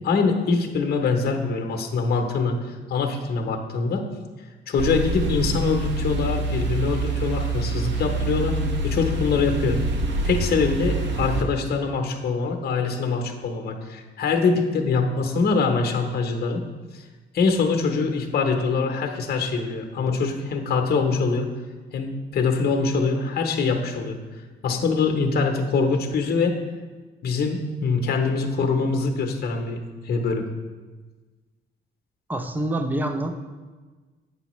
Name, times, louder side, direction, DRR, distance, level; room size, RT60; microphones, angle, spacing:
voice 1, 0.0-2.6 2.9-4.0 4.7-8.6 8.8-9.8 10.2-16.6 16.9-17.0 17.3-21.5 21.9-24.2 24.6-26.6 27.2-29.8 30.0-30.5, left 4 dB, 55° left, 3 dB, 0.8 m, -24 dB
sound 1, 4.8-11.4, right 2 dB, 65° right, 0.8 m, -26 dB
voice 2, 32.3-33.3, right 1 dB, 10° right, 7 dB, 0.5 m, -26 dB
8.1 x 5.4 x 3.0 m, 1.3 s
cardioid pair, 90°, 20 cm